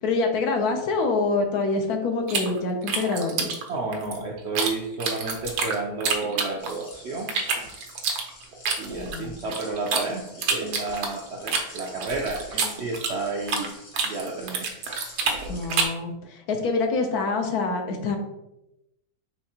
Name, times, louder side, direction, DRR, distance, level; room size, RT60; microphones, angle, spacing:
voice 1, 0.0-3.5 9.0-9.4 15.5-18.2, left 3 dB, 75° left, 4 dB, 1.2 m, -26 dB
sound 1, 2.3-4.7 5.0-6.9 7.3-10.0 10.4-13.7 13.9-16.0, right 5 dB, 85° right, 1.3 m, -27 dB
voice 2, 3.7-7.4 8.8-13.7 14.0-14.7, right 3 dB, 70° right, -1 dB, 0.6 m, -31 dB
sound 2, 6.6-15.9, left 2 dB, 60° left, 1.4 m, -48 dB
4.6 x 3.3 x 2.7 m, 0.91 s
omnidirectional pair, 1.6 m